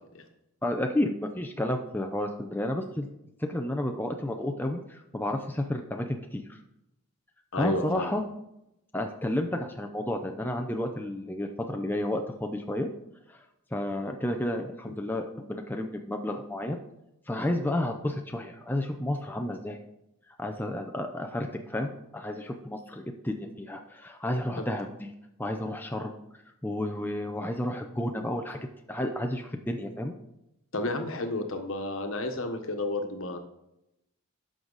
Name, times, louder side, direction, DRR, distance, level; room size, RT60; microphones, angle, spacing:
voice 1, 0.6-3.1 3.4-6.6 7.6-8.2 8.9-12.9 13.3-13.4 13.7-16.8 17.3-19.8 20.4-25.1 25.4-26.1 26.6-28.6 28.9-30.1, left 1 dB, 10° left, 4 dB, 0.5 m, -31 dB
voice 2, 7.5-8.1 14.9-15.0 24.6-24.7 30.7-33.4, left 2 dB, 65° left, 5 dB, 1.2 m, -31 dB
11.0 x 6.3 x 4.0 m, 0.85 s
head